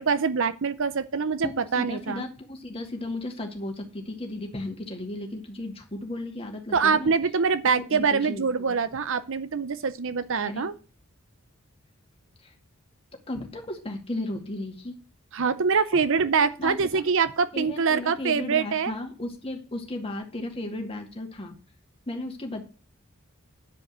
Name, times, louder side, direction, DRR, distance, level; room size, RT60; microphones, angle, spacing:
voice 1, 0.0-2.2 6.7-10.7 15.3-18.9, right 5 dB, 65° right, 0.7 m, -24 dB
voice 2, 1.4-7.1 7.8-8.8 10.4-10.6 12.4-12.5 13.3-14.9 16.4-17.0 17.5-21.5 22.1-22.6, left 1 dB, 25° left, 2.2 m, -35 dB
9.5 x 5.2 x 8.1 m
head